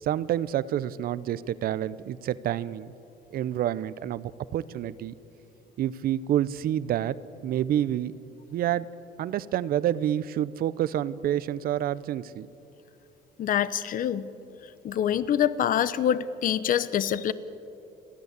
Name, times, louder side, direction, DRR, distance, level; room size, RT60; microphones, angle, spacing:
voice 1, 0.0-2.9 3.3-5.1 5.8-7.2 7.4-8.1 8.5-8.9 9.2-12.5, right 11 dB, 60° right, 18 dB, 0.7 m, -28 dB
voice 2, 13.4-14.2 14.8-17.3, left 9 dB, 55° left, 16 dB, 0.8 m, -25 dB
29.5 x 11.0 x 8.2 m, 2.8 s
cardioid pair, 110°, 17 cm